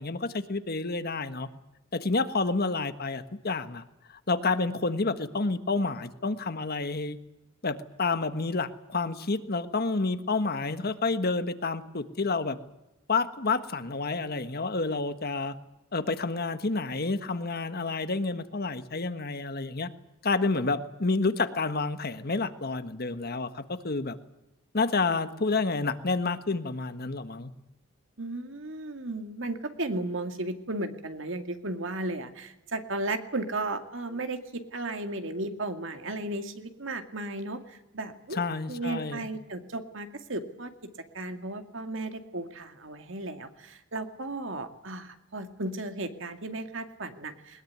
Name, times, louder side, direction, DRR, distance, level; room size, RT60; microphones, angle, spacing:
voice 1, 0.0-1.5 1.9-3.8 4.1-7.2 7.6-12.6 13.1-15.5 15.9-19.9 20.2-24.2 24.7-27.5 38.3-39.3, left 3 dB, 50° left, 11 dB, 1.4 m, -29 dB
voice 2, 28.2-38.4 38.7-40.7 41.1-47.6, right 2 dB, 65° right, 7 dB, 2.3 m, -35 dB
21.0 x 21.0 x 9.5 m, 0.92 s
head